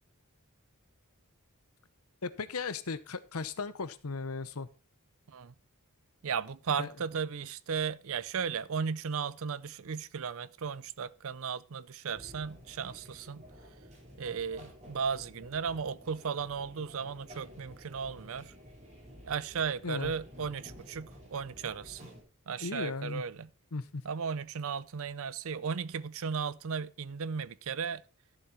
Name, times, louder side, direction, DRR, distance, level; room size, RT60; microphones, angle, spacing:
voice 1, 2.2-4.7 6.8-6.9 19.8-20.1 22.6-23.2 23.7-24.0, left 4 dB, 75° left, 0.9 m, -36 dB
voice 2, 6.2-13.4 14.2-18.5 19.2-22.1 22.5-23.5 24.0-28.0, right 6 dB, 65° right, 0.6 m, -35 dB
sound 1, 12.1-22.2, equal, 30° right, 3.8 m, -52 dB
12.5 x 7.4 x 4.2 m
head